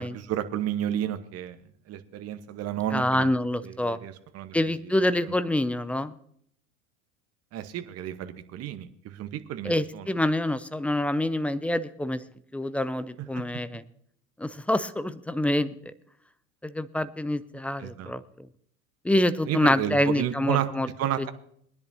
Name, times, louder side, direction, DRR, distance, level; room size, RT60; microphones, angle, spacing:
voice 1, 0.0-1.6 1.9-3.3 3.6-4.6 4.8-5.0 5.3-5.4 7.5-10.1 13.2-13.6 17.8-18.1 19.5-21.3, right 11 dB, 35° right, 10 dB, 1.1 m, -32 dB
voice 2, 2.9-4.0 4.5-6.1 9.6-12.2 12.5-13.8 14.4-15.7 16.6-18.2 19.0-20.9, left 1 dB, 5° left, 14 dB, 0.4 m, -26 dB
21.5 x 10.5 x 2.7 m, 0.67 s
hypercardioid pair, 90°, 41 cm